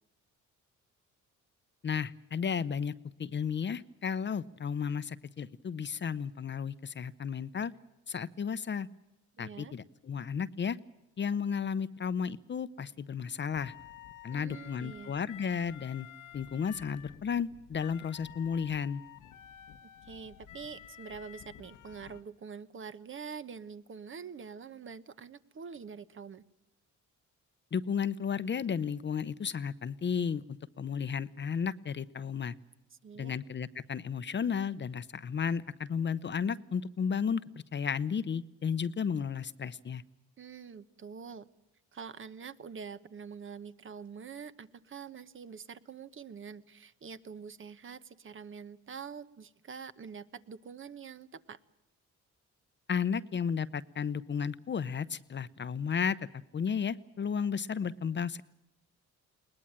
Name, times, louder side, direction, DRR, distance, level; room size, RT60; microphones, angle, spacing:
voice 1, 1.8-2.9 3.2-7.7 8.1-8.9 9.4-10.8 11.2-13.7 14.2-16.1 16.3-19.0 27.7-30.4 30.8-32.5 33.1-37.4 37.7-40.0 52.9-56.2 56.5-58.4, left 6 dB, 35° left, 15 dB, 0.8 m, -33 dB
voice 2, 9.4-9.8 14.3-15.1 19.8-26.4 32.9-33.3 40.4-41.5 41.9-51.6, right 6 dB, 40° right, 13 dB, 1.1 m, -45 dB
sound 1, 13.5-22.2, left 10 dB, 75° left, 1.3 m, -51 dB
21.0 x 19.5 x 9.0 m, 0.90 s
cardioid pair, 90°, 30 cm